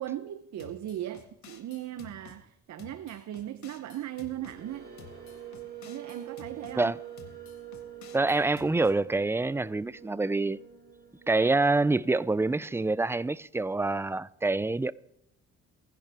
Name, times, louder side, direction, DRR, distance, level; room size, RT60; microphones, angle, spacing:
voice 1, 0.0-4.9 5.8-6.9, right 12 dB, 65° right, 0.7 m, -38 dB
sound 1, 0.6-2.4 2.8-4.6 5.0-6.8 7.2-9.0, left 7 dB, 65° left, 1.8 m, -51 dB
sound 2, 3.9-12.3, right 10 dB, 35° right, 5.2 m, -46 dB
voice 2, 8.1-10.6 11.3-14.9, right 3 dB, 10° right, 0.4 m, -26 dB
27.0 x 10.5 x 3.4 m
cardioid pair, 90°, 30 cm